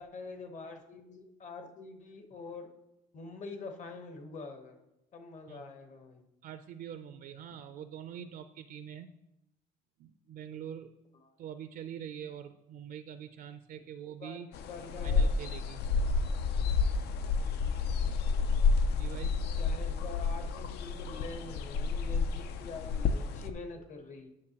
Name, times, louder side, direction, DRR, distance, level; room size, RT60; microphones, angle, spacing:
voice 1, 0.0-2.7 3.1-4.8 5.1-6.2 11.2-11.3 14.2-15.3 19.6-24.3, left 3 dB, 45° left, 5 dB, 1.1 m, -45 dB
voice 2, 6.4-9.1 10.0-10.9 11.4-14.5 15.0-15.8 18.9-19.4, right 9 dB, 60° right, 10 dB, 0.4 m, -44 dB
sound 1, 14.5-23.5, left 4 dB, 75° left, 0.5 m, -30 dB
9.6 x 6.3 x 2.9 m, 0.91 s
cardioid pair, 110°, 17 cm